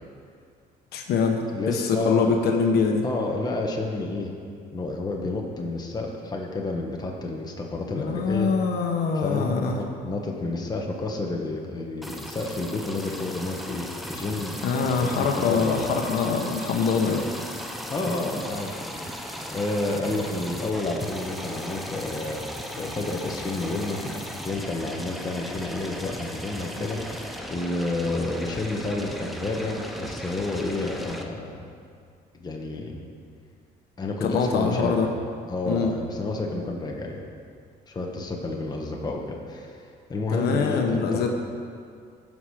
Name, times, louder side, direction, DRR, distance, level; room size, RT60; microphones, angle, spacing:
voice 1, 0.9-3.0 7.9-9.8 14.6-17.2 34.2-35.1 35.7-35.9 40.3-41.3, left 5 dB, 70° left, 2 dB, 1.1 m, -24 dB
voice 2, 1.5-2.3 3.0-4.3 4.7-8.5 9.1-15.8 17.9-22.5 22.7-24.0 24.4-27.2 27.5-31.7 32.3-33.1 34.0-35.1 35.5-37.2 37.9-39.8 40.1-41.3, left 2 dB, 25° left, 0 dB, 1.5 m, -30 dB
sound 1, 12.0-31.2, equal, ahead, 0.9 m, -37 dB
16.0 x 6.3 x 5.0 m, 2.3 s
cardioid pair, 110°, 17 cm